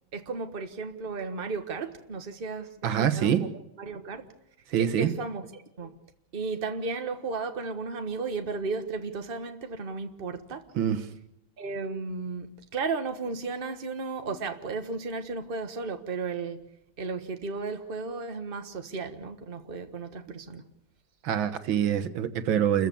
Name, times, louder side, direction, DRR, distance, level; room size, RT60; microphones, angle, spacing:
voice 1, 0.1-3.5 3.8-4.3 4.8-5.9 6.3-10.6 11.6-16.6 17.0-20.6, right 4 dB, 30° right, 1.6 m, -34 dB
voice 2, 2.8-3.5 4.7-5.1 10.8-11.1 21.2-22.9, right 9 dB, 85° right, 2.0 m, -25 dB
28.5 x 15.0 x 7.1 m
omnidirectional pair, 2.1 m